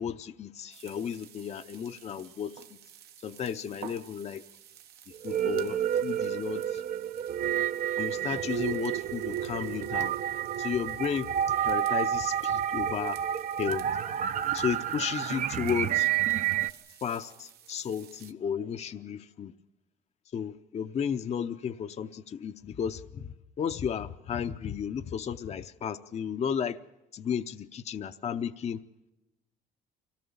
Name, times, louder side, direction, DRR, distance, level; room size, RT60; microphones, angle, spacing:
voice 1, 0.0-2.6 3.2-4.4 5.2-6.8 8.0-10.2 10.6-11.3 11.6-13.2 13.6-13.8 14.5-16.1 17.0-19.5 20.3-26.8 27.1-28.8, left 7 dB, 40° left, 9 dB, 0.7 m, -33 dB
sound 1, 0.7-18.3, right 10 dB, 70° right, 1.2 m, -53 dB
sound 2, 5.2-16.7, right 10 dB, 50° right, 0.7 m, -30 dB
25.0 x 18.0 x 7.0 m, 1.0 s
cardioid pair, 110°, 17 cm